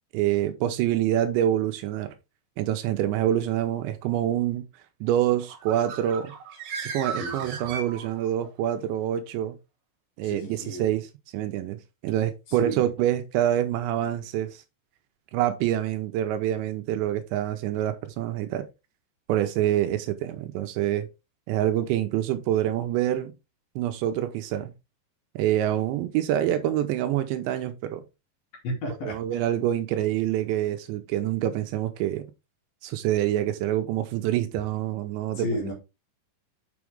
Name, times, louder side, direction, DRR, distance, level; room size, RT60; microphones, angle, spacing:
voice 1, 0.1-2.2 2.6-4.6 5.0-6.3 6.8-9.6 10.2-11.1 11.3-14.6 15.3-18.7 19.3-21.1 21.5-23.3 23.8-24.7 25.4-28.0 29.0-32.3 32.8-35.6, right 12 dB, 85° right, 2.9 m, -26 dB
Bird, 5.4-8.5, right 6 dB, 55° right, 2.8 m, -36 dB
voice 2, 7.2-7.7 10.2-10.9 12.5-12.9 28.6-29.5 35.4-35.7, equal, 55° left, 3.7 m, -33 dB
7.0 x 6.1 x 3.4 m
omnidirectional pair, 5.4 m